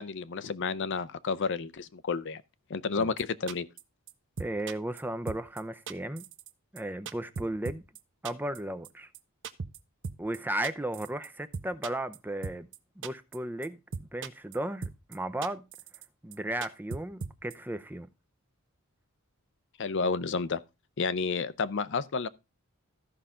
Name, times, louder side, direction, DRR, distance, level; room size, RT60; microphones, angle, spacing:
voice 1, 0.0-2.4 2.7-3.7 19.8-20.6 21.0-22.3, left 4 dB, 60° left, 0.6 m, -31 dB
sound 1, 3.2-3.3 3.5-3.8 4.1-4.2 4.4-5.0 5.3-5.6 5.9-6.5 6.8-6.9 7.1-8.0 8.3-8.6 8.8-8.9 9.1-9.2 9.4-9.8 10.0-10.4 10.6-11.3 11.5-12.2 12.4-12.8 13.0-13.4 13.6-13.7 13.9-14.6 14.8-15.2 15.4-16.1 16.3-16.4 16.6-17.5, right 5 dB, 60° right, 0.6 m, -38 dB
voice 2, 4.4-6.3 6.7-7.8 8.2-9.1 10.2-12.7 13.0-15.6 16.2-18.1, right 1 dB, 10° right, 0.5 m, -35 dB
14.0 x 5.7 x 3.7 m
head